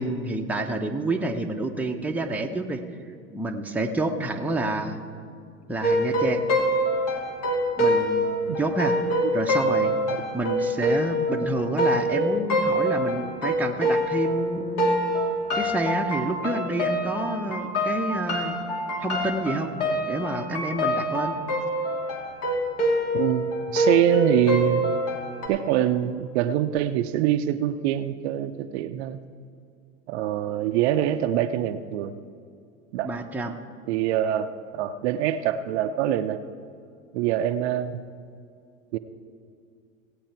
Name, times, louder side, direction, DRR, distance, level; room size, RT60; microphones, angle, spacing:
voice 1, 0.0-2.8 3.3-5.0 5.7-6.4 7.8-9.9 10.3-15.0 15.5-18.6 19.0-19.7 20.1-21.3 33.0-33.6, right 2 dB, 5° right, 2 dB, 0.8 m, -28 dB
sound 1, 5.8-14.5 14.8-25.5, equal, 55° left, 2.5 m, -25 dB
voice 2, 23.1-25.0 25.5-29.2 30.1-32.1 32.9-33.1 33.9-36.4 37.1-38.0 38.9-39.0, right 12 dB, 55° right, 9 dB, 0.6 m, -25 dB
17.0 x 8.5 x 4.5 m, 2.4 s
hypercardioid pair, 95°, 41 cm